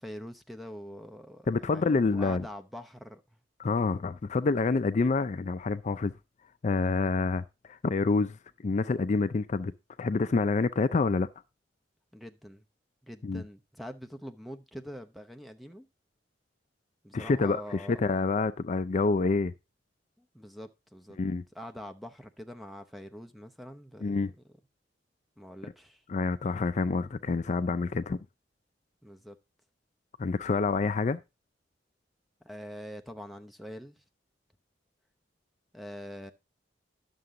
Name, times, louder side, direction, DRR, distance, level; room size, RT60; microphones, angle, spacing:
voice 1, 0.0-3.2 12.1-12.6 13.0-15.9 17.0-18.1 20.2-21.2 21.5-24.3 25.4-26.0 29.0-29.4 32.4-34.0 35.7-36.3, equal, ahead, 0.8 m, -44 dB
voice 2, 1.5-2.5 3.6-6.1 6.6-8.4 8.6-9.7 10.0-11.3 13.2-13.4 17.1-19.5 21.2-21.4 24.0-24.3 26.1-28.2 30.2-31.2, left 3 dB, 40° left, 0.4 m, -27 dB
11.0 x 6.9 x 3.7 m
head